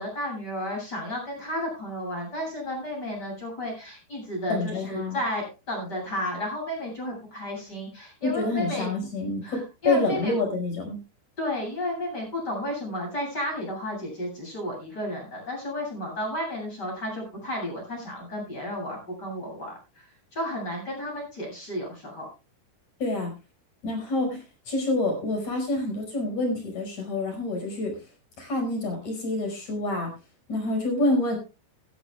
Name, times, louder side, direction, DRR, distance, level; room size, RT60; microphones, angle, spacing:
voice 1, 0.0-8.9 9.4-10.3 11.4-20.1 20.3-22.3, left 1 dB, 20° left, 0 dB, 8.3 m, -32 dB
voice 2, 4.5-5.2 8.2-11.0 23.0-23.3 23.8-28.0 28.4-30.1 30.5-31.4, left 2 dB, 40° left, 4 dB, 6.4 m, -27 dB
17.5 x 14.5 x 2.3 m, 0.29 s
omnidirectional pair, 4.9 m